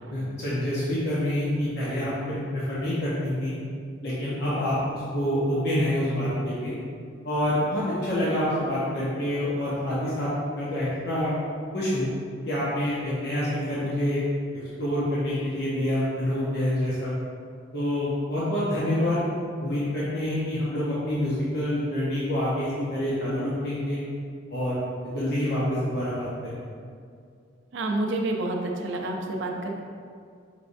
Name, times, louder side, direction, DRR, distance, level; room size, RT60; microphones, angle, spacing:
voice 1, 0.1-3.5 4.0-6.7 7.2-10.3 10.5-11.3 11.7-12.1 12.5-14.2 14.8-17.1 17.7-19.2 19.6-24.0 24.5-24.8 25.1-26.5, left 1 dB, 55° left, -9 dB, 0.8 m, -27 dB
voice 2, 27.7-29.8, right 2 dB, 65° right, 2 dB, 0.5 m, -29 dB
5.3 x 3.3 x 2.6 m, 2.2 s
head